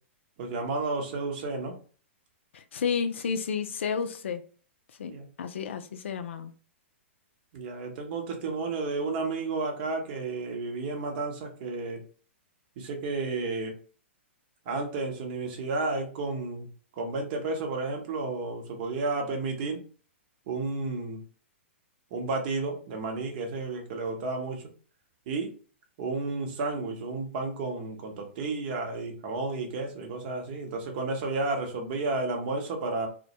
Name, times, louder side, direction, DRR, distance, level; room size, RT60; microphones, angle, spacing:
voice 1, 0.4-1.8 5.1-5.3 7.5-12.1 12.8-13.8 14.7-16.7 16.9-19.8 20.5-21.2 22.1-24.7 25.3-25.5 26.0-33.1, right 3 dB, 45° right, 3 dB, 0.8 m, -32 dB
voice 2, 2.5-4.4 5.0-5.1 5.4-6.5, left 6 dB, 65° left, 9 dB, 0.4 m, -31 dB
2.1 x 2.1 x 2.7 m, 0.40 s
hypercardioid pair, 115°, 7 cm